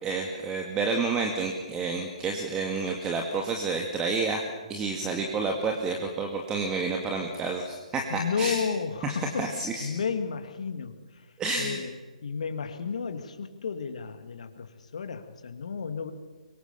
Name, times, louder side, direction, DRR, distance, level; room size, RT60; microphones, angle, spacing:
voice 1, 0.0-4.4 4.7-8.6 9.0-9.9 11.4-11.8, right 4 dB, 15° right, 2 dB, 2.2 m, -29 dB
voice 2, 8.1-11.3 11.6-12.0 12.2-16.1, left 6 dB, 60° left, 8 dB, 2.4 m, -33 dB
24.5 x 23.0 x 7.0 m, 1.3 s
figure-of-eight pair, 135°, 4 cm